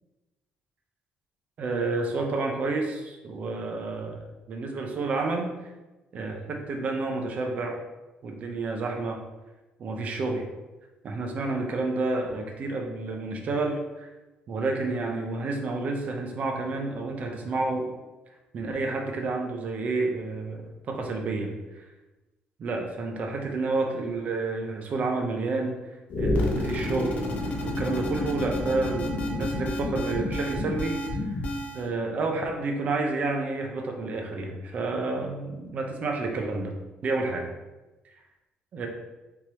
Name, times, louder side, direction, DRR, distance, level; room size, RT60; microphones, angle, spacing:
voice 1, 1.6-5.7 6.1-7.8 8.2-9.2 9.8-10.5 11.0-14.1 14.5-17.9 18.5-21.5 22.6-25.7 26.2-27.2 27.6-31.3 31.7-36.7 37.0-37.5 38.7-38.9, right 3 dB, 45° right, 2 dB, 0.7 m, -30 dB
sound 1, 26.1-31.9, left 1 dB, 45° left, 0.9 m, -29 dB
4.6 x 3.6 x 2.9 m, 1.1 s
cardioid pair, 135°, 3 cm